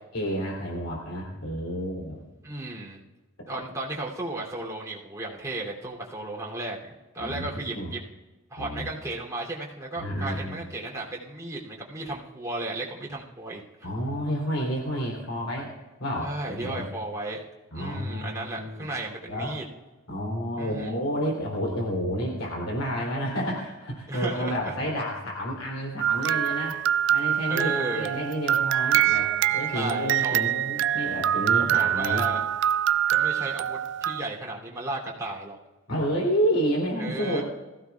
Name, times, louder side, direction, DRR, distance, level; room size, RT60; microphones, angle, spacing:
voice 1, 0.1-2.2 7.2-7.5 7.7-7.9 8.6-8.9 10.0-10.6 13.8-15.7 16.0-16.8 17.7-18.9 19.3-19.5 20.1-26.8 27.1-32.2 35.9-37.4, equal, 75° left, -1 dB, 3.2 m, -30 dB
voice 2, 2.4-3.0 3.5-8.0 8.5-13.6 16.2-17.4 17.7-19.6 20.6-20.9 24.1-24.7 27.5-28.2 29.7-30.4 31.6-32.4 33.1-35.6 37.0-37.4, right 2 dB, 15° right, -4 dB, 2.9 m, -34 dB
sound 1, 26.0-34.2, right 10 dB, 60° right, 0.3 m, -25 dB
20.5 x 15.0 x 2.4 m, 1.1 s
head